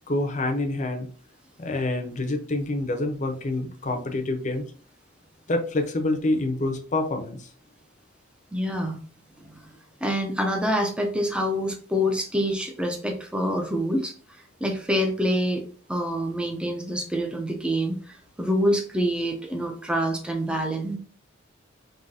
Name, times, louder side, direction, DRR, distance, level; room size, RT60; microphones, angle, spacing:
voice 1, 0.1-1.1 1.6-4.6 5.5-7.5, left 2 dB, 40° left, 5 dB, 0.7 m, -27 dB
voice 2, 8.5-9.0 9.4-9.6 10.0-14.1 14.6-15.6 15.9-21.0, equal, 5° right, 2 dB, 0.6 m, -26 dB
5.4 x 2.8 x 2.7 m, 0.43 s
head